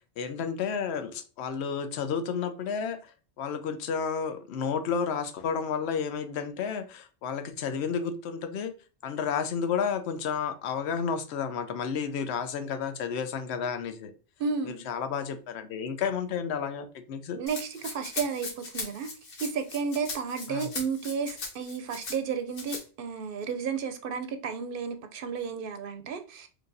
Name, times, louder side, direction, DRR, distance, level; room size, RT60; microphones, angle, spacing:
voice 1, 0.2-8.7 9.0-14.1 14.7-17.4 20.5-20.7, left 6 dB, 90° left, 0.9 m, -31 dB
voice 2, 14.4-14.8 17.4-19.1 19.4-26.5, right 6 dB, 65° right, 0.7 m, -32 dB
Rattle (instrument), 17.5-22.2 22.5-22.8, left 4 dB, 60° left, 1.1 m, -39 dB
4.6 x 2.6 x 2.5 m
omnidirectional pair, 1.1 m